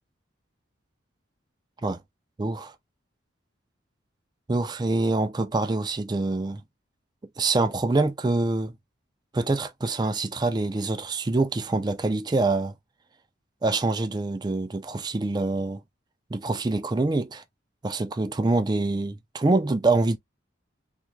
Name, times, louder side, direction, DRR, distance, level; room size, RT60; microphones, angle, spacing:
voice 1, 2.4-2.7 4.5-6.6 7.4-8.7 9.3-12.7 13.6-15.8 16.3-17.4 17.8-20.2, right 2 dB, 20° right, 0.4 m, -25 dB
3.6 x 2.1 x 3.0 m
head